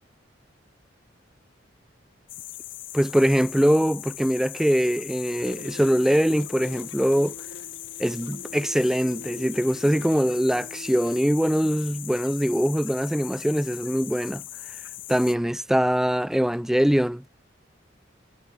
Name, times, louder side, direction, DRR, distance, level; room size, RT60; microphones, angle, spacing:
sound 1, 2.3-15.3, left 15 dB, 80° left, 1.5 m, -40 dB
voice 1, 2.9-7.3 8.0-14.4 15.1-17.2, equal, ahead, 0.3 m, -22 dB
sound 2, 5.4-11.2, left 1 dB, 60° left, 7.8 m, -44 dB
head